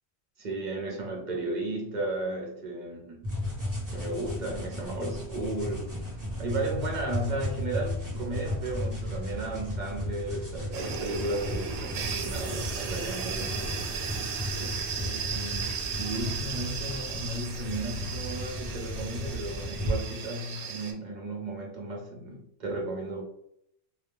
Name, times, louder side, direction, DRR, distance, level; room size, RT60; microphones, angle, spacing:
voice 1, 0.4-3.3 3.9-14.2 14.6-23.2, right 1 dB, 50° right, 0 dB, 0.7 m, -35 dB
sound 1, 3.2-20.0, equal, 20° right, 0.8 m, -35 dB
sound 2, 10.7-20.9, right 6 dB, 85° right, 0.9 m, -36 dB
2.3 x 2.2 x 3.1 m, 0.74 s
omnidirectional pair, 1.1 m